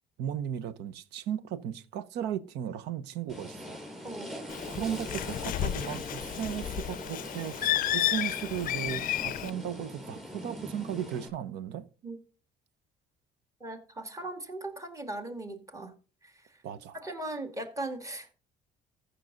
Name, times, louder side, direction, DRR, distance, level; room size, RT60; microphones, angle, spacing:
voice 1, 0.2-3.8 4.7-11.9 16.6-17.0, right 9 dB, 85° right, 0.9 m, -36 dB
sound 1, 3.3-11.3, equal, ahead, 4.6 m, -42 dB
Bird, 4.5-9.5, left 13 dB, 55° left, 0.5 m, -32 dB
voice 2, 13.6-15.9 16.2-16.6 17.0-18.3, right 2 dB, 20° right, 2.1 m, -39 dB
14.5 x 6.4 x 3.9 m
cardioid pair, 110°, 17 cm